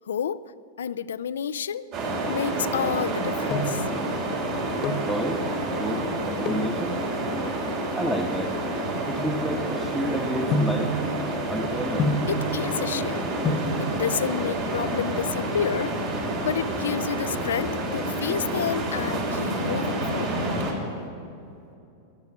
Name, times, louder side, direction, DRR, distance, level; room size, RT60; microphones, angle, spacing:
voice 1, 0.1-0.5 0.8-3.9 12.3-13.3 13.8-16.0 16.4-20.5, left 8 dB, 80° left, 16 dB, 0.4 m, -30 dB
sound 1, 1.9-20.7, right 1 dB, 55° right, 4.5 m, -28 dB
sound 2, 3.5-3.9 4.6-5.2 6.4-6.8 7.5-9.9 10.5-10.9 12.0-12.4 13.2-13.3 13.5-13.8 14.9-15.5 15.8-15.9 16.1-16.2 16.6-17.0 17.3-18.3 18.8-19.2 19.6-20.7 21.0-21.1, left 2 dB, 35° left, 1.2 m, -29 dB
voice 2, 5.0-5.4 5.8-7.0 8.0-8.6 9.1-10.9 11.5-12.1, equal, 10° right, 0 dB, 1.3 m, -29 dB
12.0 x 11.5 x 9.1 m, 2.6 s
hypercardioid pair, 100°, 0 cm